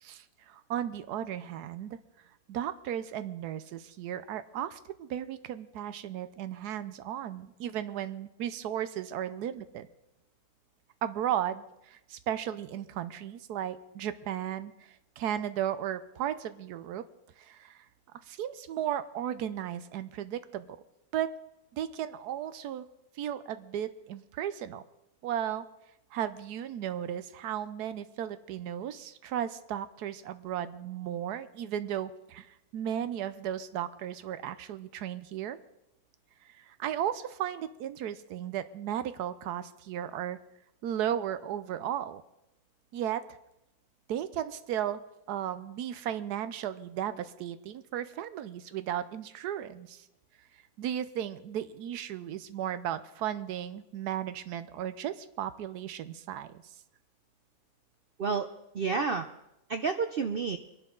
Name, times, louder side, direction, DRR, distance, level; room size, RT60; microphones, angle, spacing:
voice 1, 0.0-2.0 2.5-9.9 11.0-17.0 17.4-17.8 18.3-20.8 21.1-21.3 21.7-22.9 23.2-24.8 25.2-25.7 26.1-35.6 36.4-40.4 40.8-42.2 42.9-43.2 44.1-50.0 50.8-56.5, right 10 dB, 90° right, 13 dB, 1.2 m, -35 dB
voice 2, 58.2-59.3 59.7-60.6, right 5 dB, 60° right, 7 dB, 0.6 m, -30 dB
23.5 x 11.5 x 3.8 m, 0.88 s
omnidirectional pair, 1.6 m